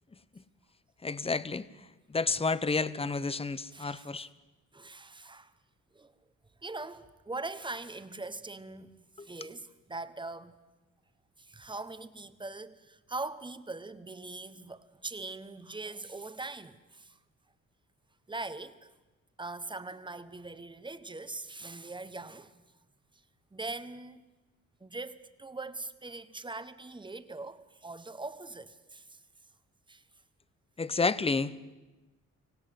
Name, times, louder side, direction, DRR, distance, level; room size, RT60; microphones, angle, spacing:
voice 1, 1.0-1.7 2.1-4.3 9.2-9.3 30.8-31.5, left 4 dB, 20° left, 1.0 m, -30 dB
voice 2, 3.7-4.3 4.7-5.5 5.9-6.1 6.6-10.6 11.4-17.2 18.3-18.9 19.4-22.5 23.5-24.2 24.8-29.2 29.9-30.0, right 3 dB, 15° right, 1.3 m, -42 dB
25.0 x 17.0 x 7.8 m
cardioid pair, 90°, 30 cm